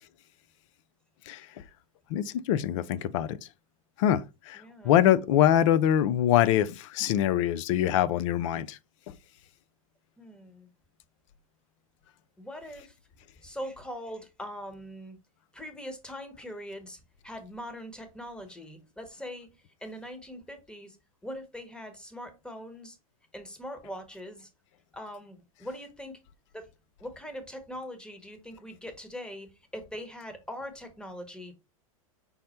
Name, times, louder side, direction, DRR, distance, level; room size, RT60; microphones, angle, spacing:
voice 1, 2.1-3.4 4.0-8.8 9.1-9.2, left 11 dB, 60° left, 0.4 m, -24 dB
voice 2, 4.5-4.9 10.2-10.7 12.4-13.0 13.4-15.2 15.5-19.5 19.8-21.0 21.2-23.0 23.3-24.5 24.9-26.2 26.5-26.7 27.0-29.5 29.7-31.6, equal, 5° left, 1.1 m, -41 dB
5.4 x 2.1 x 4.3 m
hypercardioid pair, 110°, 18 cm